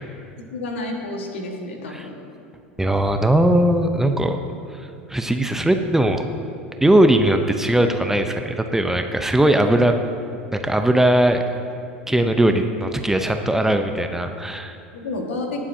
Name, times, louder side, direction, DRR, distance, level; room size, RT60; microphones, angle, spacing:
voice 1, 0.5-2.1 14.9-15.6, left 2 dB, 75° left, 2 dB, 1.6 m, -30 dB
voice 2, 2.8-4.4 4.8-6.2 6.8-10.0 10.5-11.4 12.1-14.8, right 1 dB, 5° right, 6 dB, 0.6 m, -19 dB
19.0 x 7.3 x 2.8 m, 2.4 s
hypercardioid pair, 85°, 6 cm